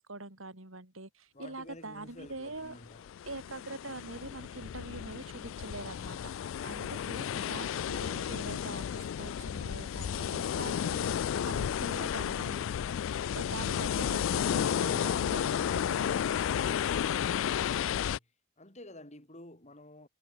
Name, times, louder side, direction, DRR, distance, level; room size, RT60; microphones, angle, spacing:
voice 1, 0.0-2.8 3.2-12.7 13.3-16.9, right 2 dB, 75° right, 5.0 m, -44 dB
voice 2, 1.3-3.1 17.4-18.3 18.6-20.1, left 1 dB, 35° left, 7.1 m, -51 dB
sound 1, 2.8-18.2, left 9 dB, 70° left, 0.3 m, -32 dB
head